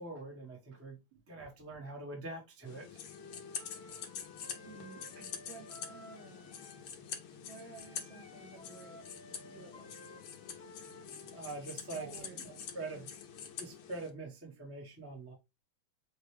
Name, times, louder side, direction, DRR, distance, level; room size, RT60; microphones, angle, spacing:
voice 1, 0.0-1.0 1.3-3.0 11.3-12.1 12.7-13.1 13.6-15.3, right 2 dB, 10° right, 0.7 m, -44 dB
voice 2, 1.1-1.5 4.6-6.6 7.4-9.0 9.4-10.1 11.9-12.6 12.9-13.1, right 5 dB, 65° right, 2.1 m, -53 dB
sound 1, 2.7-14.1, left 7 dB, 85° left, 1.9 m, -46 dB
Wind instrument woodwind instrument, 3.1-6.9 7.7-11.4, left 1 dB, 40° left, 1.0 m, -55 dB
6.3 x 2.3 x 3.2 m
omnidirectional pair, 2.4 m